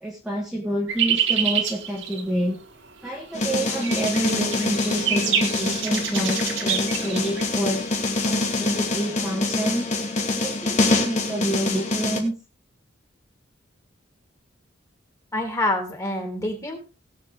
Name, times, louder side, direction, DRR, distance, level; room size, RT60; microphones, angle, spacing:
voice 1, 0.0-2.6 3.0-7.9 8.2-9.9 10.3-12.3, right 1 dB, 5° right, -3 dB, 2.0 m, -28 dB
sound 1, 0.9-8.5, right 8 dB, 70° right, 2.3 m, -28 dB
sound 2, 3.3-12.2, left 2 dB, 35° left, 2.4 m, -25 dB
voice 2, 15.3-16.8, left 1 dB, 15° left, 2 dB, 3.6 m, -26 dB
20.0 x 7.4 x 3.7 m, 0.32 s
head